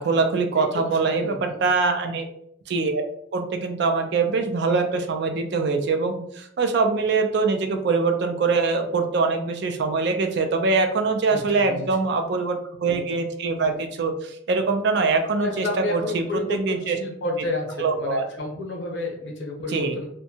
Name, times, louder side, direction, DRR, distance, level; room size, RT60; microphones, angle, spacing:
voice 1, 0.0-2.3 2.7-3.0 3.3-17.0 17.8-18.2 19.7-20.0, right 4 dB, 55° right, 6 dB, 0.3 m, -23 dB
voice 2, 0.6-1.6 11.3-11.4 11.7-11.9 15.4-20.1, left 2 dB, 65° left, -1 dB, 0.7 m, -31 dB
2.6 x 2.2 x 2.7 m, 0.72 s
head